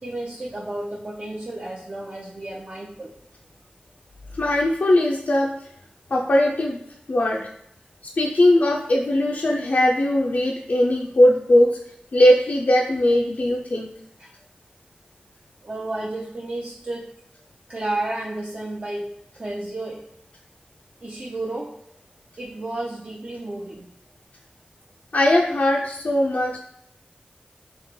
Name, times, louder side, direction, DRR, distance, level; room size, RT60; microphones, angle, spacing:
voice 1, 0.0-3.1 14.2-14.3 15.6-17.1 17.7-20.0 21.0-21.7 22.4-23.9, right 2 dB, 40° right, -3 dB, 0.5 m, -32 dB
voice 2, 4.3-5.5 6.1-6.8 7.1-7.4 8.2-11.8 12.1-13.9 25.1-26.6, left 1 dB, 55° left, 0 dB, 0.3 m, -19 dB
3.1 x 2.8 x 3.6 m, 0.74 s
wide cardioid pair, 70°, 3 cm